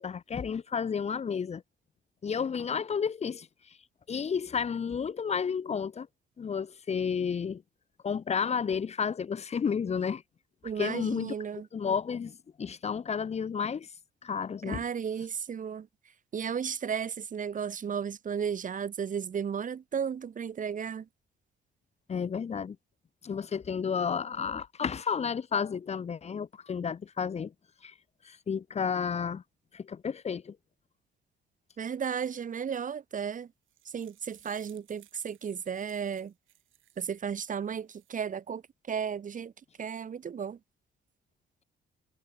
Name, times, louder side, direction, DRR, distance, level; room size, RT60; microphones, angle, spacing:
voice 1, 0.0-1.6 2.2-3.8 4.1-6.1 6.4-7.6 8.0-10.2 10.8-11.3 11.7-13.9 14.2-14.9 22.1-22.8 23.2-27.5 27.8-27.9 28.2-29.4 29.7-30.6, left 6 dB, 35° left, 0.6 m, -31 dB
voice 2, 10.6-11.7 14.6-15.9 16.3-21.1 31.8-33.5 33.8-36.3 37.0-38.6 38.9-39.5 39.8-40.6, right 7 dB, 40° right, 1.0 m, -34 dB
sound 1, 33.4-37.2 37.7-38.2, right 13 dB, 80° right, 7.3 m, -62 dB
cardioid pair, 90°, 20 cm